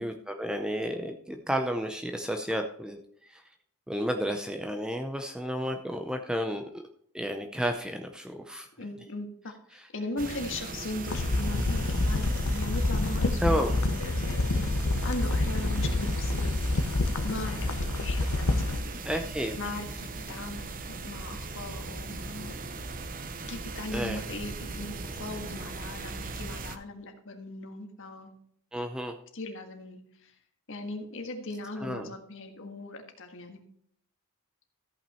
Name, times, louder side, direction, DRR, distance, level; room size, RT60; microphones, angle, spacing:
voice 1, 0.0-3.4 3.9-6.8 7.1-8.7 9.7-9.9 13.4-13.8 19.0-19.6 23.9-24.3 28.7-29.1 31.8-32.1, equal, 5° right, 5 dB, 0.6 m, -32 dB
voice 2, 8.8-14.6 15.0-16.6 17.2-19.0 19.6-22.6 23.4-24.9 25.2-28.3 29.3-30.3 30.7-33.6, left 2 dB, 60° left, 5 dB, 1.6 m, -39 dB
sound 1, 10.2-26.8, right 3 dB, 40° right, 0.8 m, -39 dB
sound 2, 11.1-18.8, left 2 dB, 85° left, 0.9 m, -28 dB
14.0 x 5.7 x 4.3 m, 0.68 s
head